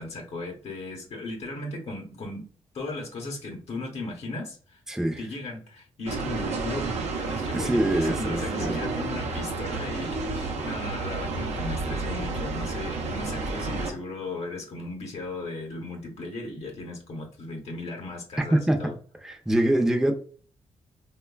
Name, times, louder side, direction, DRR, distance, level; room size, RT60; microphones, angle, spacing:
voice 1, 0.0-2.4 2.7-4.8 5.2-18.9, left 2 dB, 65° left, 2 dB, 0.8 m, -36 dB
voice 2, 4.9-5.2 7.5-8.8 18.5-18.9 19.2-20.1, right 1 dB, 5° right, 4 dB, 0.5 m, -24 dB
sound 1, 6.1-13.9, right 3 dB, 80° right, 0.6 m, -31 dB
3.0 x 2.2 x 2.2 m, 0.43 s
cardioid pair, 65°, 11 cm